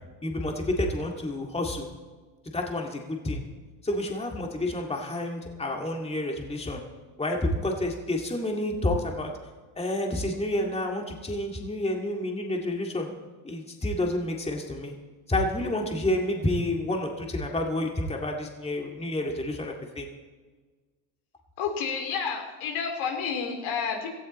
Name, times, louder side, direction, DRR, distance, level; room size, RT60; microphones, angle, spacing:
voice 1, 0.2-1.9 2.5-3.4 3.8-6.8 7.2-9.3 9.8-13.1 13.4-14.9 15.3-20.1, left 1 dB, 10° left, 1 dB, 2.1 m, -29 dB
voice 2, 21.6-24.1, left 6 dB, 70° left, 4 dB, 3.3 m, -30 dB
17.5 x 14.0 x 4.2 m, 1.4 s
supercardioid pair, 95°, 49 cm